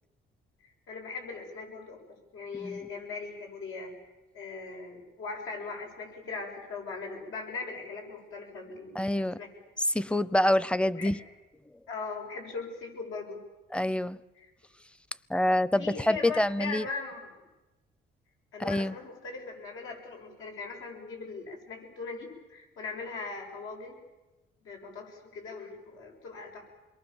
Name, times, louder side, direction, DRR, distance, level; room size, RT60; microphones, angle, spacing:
voice 1, 0.6-2.0 2.3-3.9 4.3-9.5 11.0-11.1 11.9-13.4 14.4-14.5 15.8-17.4 18.5-24.0 24.6-26.6, left 4 dB, 80° left, 1 dB, 7.7 m, -40 dB
voice 2, 2.5-2.9 8.9-9.4 9.9-11.2 13.7-14.2 15.3-16.9 18.6-18.9, left 1 dB, 5° left, 19 dB, 0.8 m, -26 dB
28.0 x 22.5 x 7.3 m, 1.1 s
cardioid pair, 90°, 21 cm